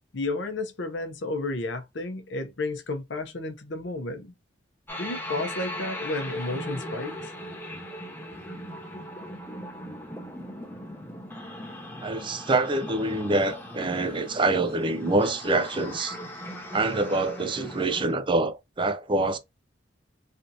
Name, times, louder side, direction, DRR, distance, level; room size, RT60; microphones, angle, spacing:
voice 1, 0.1-4.3 5.0-7.3, left 2 dB, 65° left, 0.7 m, -32 dB
sound 1, 4.9-18.1, equal, 10° left, 0.7 m, -39 dB
voice 2, 12.0-16.2 16.7-19.4, right 2 dB, 25° right, 0.4 m, -25 dB
3.3 x 2.6 x 2.7 m
head